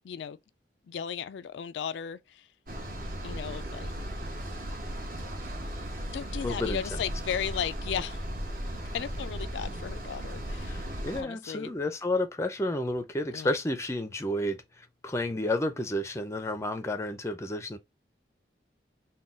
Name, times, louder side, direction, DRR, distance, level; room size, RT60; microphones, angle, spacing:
voice 1, 0.0-0.4 0.9-2.5 3.2-3.9 6.1-8.2 8.9-10.9 11.1-11.7 13.3-13.5, left 8 dB, 85° left, 0.3 m, -35 dB
sound 1, 2.7-11.2, equal, 50° right, 1.0 m, -36 dB
voice 2, 6.4-7.0 10.7-17.8, left 1 dB, 15° left, 0.4 m, -31 dB
3.9 x 2.2 x 3.6 m
head